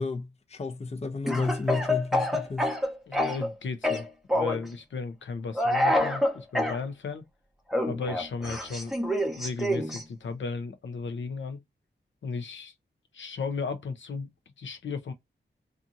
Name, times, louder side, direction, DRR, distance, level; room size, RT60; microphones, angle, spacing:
voice 1, 0.0-2.7, left 3 dB, 35° left, 0.5 m, -31 dB
Speech / Cough, 1.3-3.5 3.8-4.7 5.6-6.8 7.7-10.0, left 1 dB, ahead, 0.7 m, -27 dB
voice 2, 3.1-7.3 7.9-8.9 9.4-11.6 12.2-12.7 13.1-14.3 14.6-15.1, left 4 dB, 80° left, 0.6 m, -35 dB
2.7 x 2.4 x 2.5 m
wide cardioid pair, 95°, 19 cm